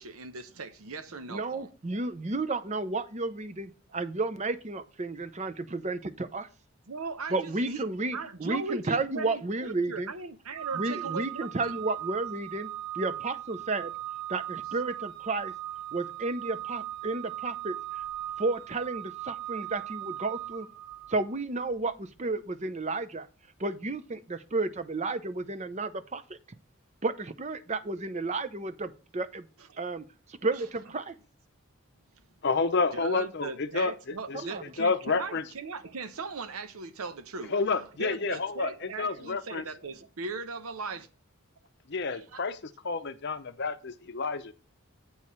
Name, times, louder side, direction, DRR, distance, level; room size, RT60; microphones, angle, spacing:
voice 1, 0.0-1.7 6.9-7.8 8.1-11.8 29.7-29.8 32.9-37.6 38.0-41.1 42.1-42.5, right 4 dB, 80° right, 0.8 m, -38 dB
voice 2, 1.3-6.5 7.3-10.1 10.7-12.7 12.9-13.9 14.3-15.5 15.9-17.8 18.4-20.7 21.1-23.3 23.6-26.4 27.0-29.4 29.8-31.2 34.4-34.6, right 3 dB, 30° right, 0.6 m, -32 dB
Organ, 10.5-21.3, right 13 dB, 50° right, 1.9 m, -38 dB
voice 3, 32.4-34.4 34.8-35.4 37.5-38.7 39.0-39.6 41.9-42.6 42.8-44.5, left 4 dB, 50° left, 0.6 m, -29 dB
8.6 x 4.7 x 5.5 m
head